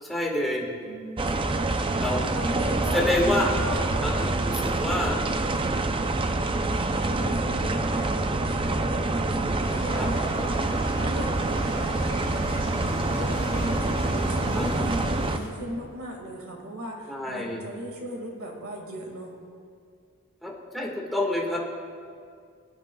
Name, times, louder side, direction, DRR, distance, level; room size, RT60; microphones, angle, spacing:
voice 1, 0.0-0.7 2.0-2.2 2.9-5.2 9.9-10.1 14.6-14.9 17.1-17.6 20.4-21.6, left 1 dB, ahead, -3 dB, 1.7 m, -28 dB
voice 2, 0.8-1.4 2.3-3.9 7.1-19.3, right 1 dB, 75° right, 1 dB, 2.0 m, -37 dB
sound 1, 1.2-15.4, right 2 dB, 25° right, 0.5 m, -26 dB
sound 2, 9.6-15.5, left 1 dB, 65° left, 2.5 m, -38 dB
25.5 x 8.9 x 2.3 m, 2.3 s
head